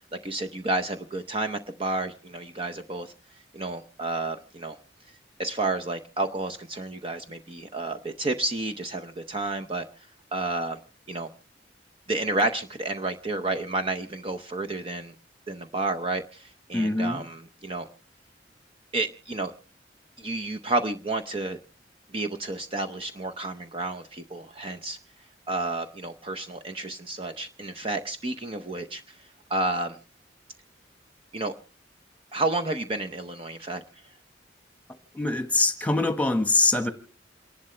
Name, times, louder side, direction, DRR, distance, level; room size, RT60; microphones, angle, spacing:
voice 1, 0.2-3.1 3.5-4.8 5.4-9.9 10.3-10.8 11.1-11.3 12.1-15.1 15.5-17.9 18.9-19.5 20.2-21.6 22.1-25.0 25.5-29.2 29.5-30.0 31.3-31.5 32.3-33.8, right 2 dB, 30° right, 0.7 m, -30 dB
voice 2, 16.7-17.2 35.1-36.9, left 2 dB, 10° left, 1.4 m, -23 dB
28.5 x 11.5 x 3.3 m
head